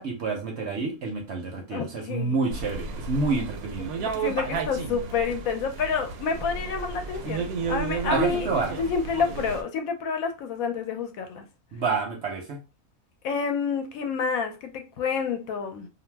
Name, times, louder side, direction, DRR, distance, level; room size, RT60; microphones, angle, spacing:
voice 1, 0.0-3.9 8.1-8.8 11.7-12.6, right 4 dB, 60° right, 0.7 m, -28 dB
voice 2, 1.7-2.4 4.0-8.5 8.8-11.5 13.2-15.9, left 6 dB, 75° left, 1.0 m, -29 dB
sound 1, 2.5-9.6, right 5 dB, 85° right, 1.1 m, -32 dB
2.6 x 2.0 x 3.2 m
omnidirectional pair, 1.5 m